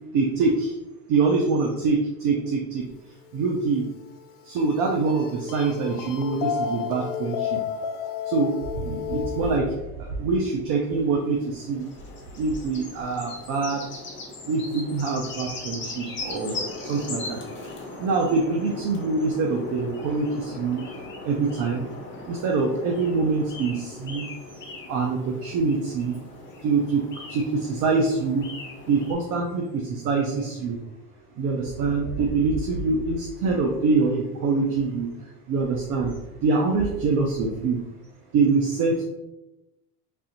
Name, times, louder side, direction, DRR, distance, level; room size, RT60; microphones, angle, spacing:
voice 1, 0.1-0.7 1.1-2.8 3.3-3.8 4.5-7.6 8.3-8.5 8.8-9.7 10.2-11.9 12.4-13.8 14.5-16.6 16.9-17.4 18.0-20.8 21.2-21.8 22.3-24.2 24.9-26.1 26.6-27.0 27.3-28.5 28.9-30.8 31.4-35.1 35.5-36.1 36.4-37.8 38.3-39.0, right 4 dB, 45° right, 1 dB, 0.6 m, -24 dB
sound 1, 3.3-9.6, left 8 dB, 75° left, 0.5 m, -32 dB
sound 2, 10.9-29.1, left 2 dB, 25° left, 0.9 m, -39 dB
3.3 x 2.5 x 2.9 m, 0.96 s
hypercardioid pair, 95°, 46 cm